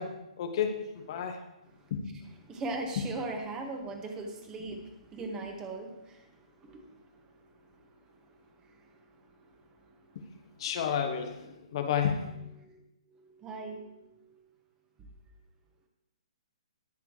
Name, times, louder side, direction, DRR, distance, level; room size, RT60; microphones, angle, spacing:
voice 1, 0.0-1.4 1.9-2.1 10.1-10.2 10.6-12.3, left 7 dB, 50° left, 6 dB, 1.2 m, -31 dB
voice 2, 2.4-10.7 11.6-11.7 12.6-14.2, right 2 dB, 20° right, 2 dB, 2.0 m, -42 dB
19.5 x 6.9 x 3.3 m, 0.91 s
figure-of-eight pair, 130°, 4 cm